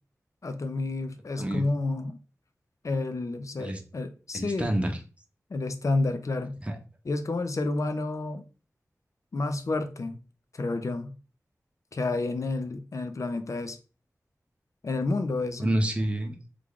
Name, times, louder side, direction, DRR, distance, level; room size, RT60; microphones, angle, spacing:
voice 1, 0.4-2.2 2.8-4.7 5.5-6.6 7.1-8.4 9.3-10.2 10.5-11.1 11.9-13.8 14.8-15.7, left 2 dB, 60° left, 0.5 m, -30 dB
voice 2, 4.3-5.0 6.6-6.8 15.6-16.5, right 1 dB, 20° right, 0.7 m, -28 dB
3.3 x 2.4 x 3.6 m
wide cardioid pair, 60°, 6 cm